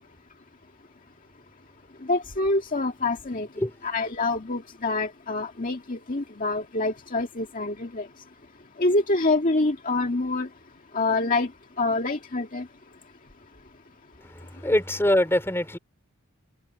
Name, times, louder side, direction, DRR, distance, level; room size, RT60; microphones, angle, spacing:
voice 1, 2.1-3.5 3.8-8.0 8.8-10.5 10.9-11.5 11.8-12.6, left 2 dB, 40° left, 1.9 m, -26 dB
voice 2, 14.2-15.8, left 1 dB, 10° left, 3.6 m, -24 dB
head